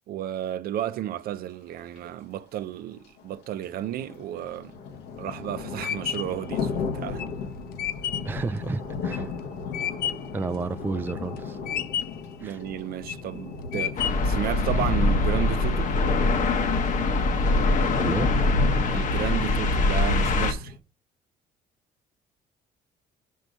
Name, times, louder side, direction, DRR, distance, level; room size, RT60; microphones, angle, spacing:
voice 1, 0.1-4.7 5.2-7.2 12.4-16.0 18.9-20.7, right 12 dB, 65° right, 0.6 m, -33 dB
sound 1, 2.0-2.1 3.0-20.8, left 4 dB, 85° left, 1.3 m, -35 dB
sound 2, 4.9-10.4 10.8-11.4 11.7-12.3 12.8-13.3 13.7-14.4, left 9 dB, 65° left, 0.5 m, -31 dB
voice 2, 8.2-9.3 10.3-11.6 12.4-12.6 18.0-18.3, right 3 dB, 10° right, 0.3 m, -31 dB
sound 3, 14.0-20.5, left 2 dB, 50° left, 1.0 m, -23 dB
6.2 x 4.6 x 5.3 m
cardioid pair, 110°, 17 cm